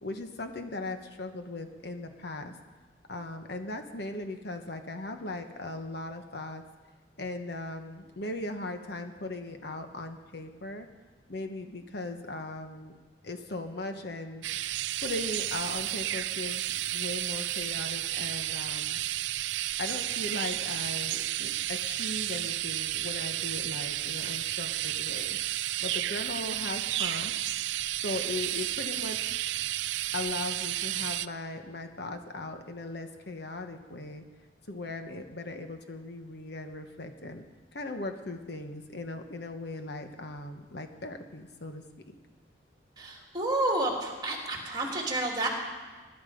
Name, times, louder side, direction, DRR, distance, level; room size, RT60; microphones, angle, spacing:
voice 1, 0.0-2.5 3.1-6.6 7.2-10.9 11.3-12.9 13.2-14.4 15.0-16.6 16.9-19.0 19.8-27.3 28.0-29.4 30.1-34.2 34.7-37.4 37.7-42.1, left 2 dB, 60° left, 6 dB, 1.2 m, -38 dB
sound 1, 14.4-31.3, right 14 dB, 75° right, 0.4 m, -32 dB
voice 2, 43.0-45.5, right 2 dB, 25° right, -1 dB, 3.0 m, -30 dB
21.0 x 12.0 x 5.2 m, 1.4 s
head